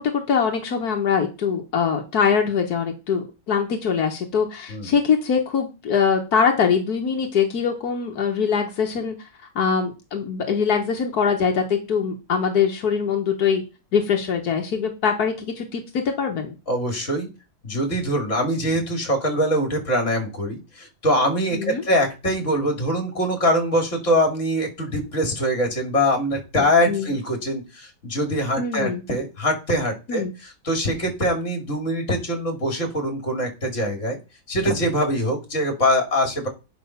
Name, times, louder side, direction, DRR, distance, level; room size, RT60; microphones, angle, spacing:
voice 1, 0.0-9.2 9.6-13.6 13.9-16.5 21.5-21.8 26.9-27.1 28.6-29.0 30.1-30.3, left 6 dB, 85° left, 2 dB, 1.8 m, -23 dB
voice 2, 16.7-17.3 17.6-34.2 34.5-36.5, equal, 55° left, 3 dB, 3.1 m, -23 dB
9.3 x 5.7 x 5.7 m, 0.30 s
omnidirectional pair, 1.6 m